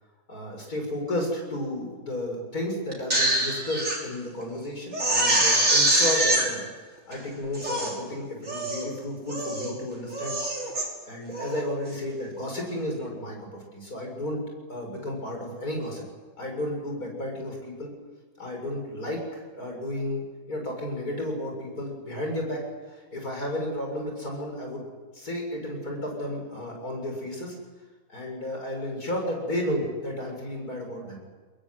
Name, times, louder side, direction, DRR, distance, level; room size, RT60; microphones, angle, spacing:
voice 1, 0.3-6.7 7.1-10.4 11.1-16.0 16.4-17.9 18.4-20.2 20.5-22.6 22.9-24.8 25.1-27.5 28.1-31.2, left 1 dB, 75° left, 1 dB, 7.8 m, -32 dB
Crying sobbing, 2.9-4.0 4.4-4.5 4.9-6.4 7.1-7.2 7.5-8.0 8.5-8.9 9.3-9.7 10.1-10.8 11.3-11.6, right 1 dB, 55° right, 6.5 m, -24 dB
24.0 x 21.0 x 9.7 m, 1.3 s
omnidirectional pair, 1.6 m